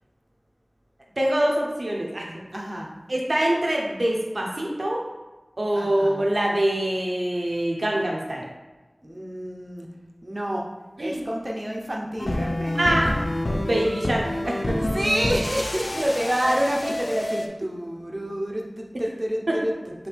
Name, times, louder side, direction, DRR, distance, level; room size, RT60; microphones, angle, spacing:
voice 1, 1.2-2.4 3.1-5.0 5.6-8.4 11.0-11.2 12.7-13.2 13.5-14.8 19.5-19.6, right 1 dB, 75° right, -2 dB, 0.8 m, -24 dB
voice 2, 2.5-2.9 5.7-6.3 9.0-9.9 10.2-10.7 11.0-12.8 14.8-20.1, equal, 35° right, -2 dB, 0.7 m, -28 dB
sound 1, 12.2-17.5, left 1 dB, 70° left, 0.4 m, -28 dB
5.0 x 2.7 x 3.3 m, 1.1 s
wide cardioid pair, 45°, 0 cm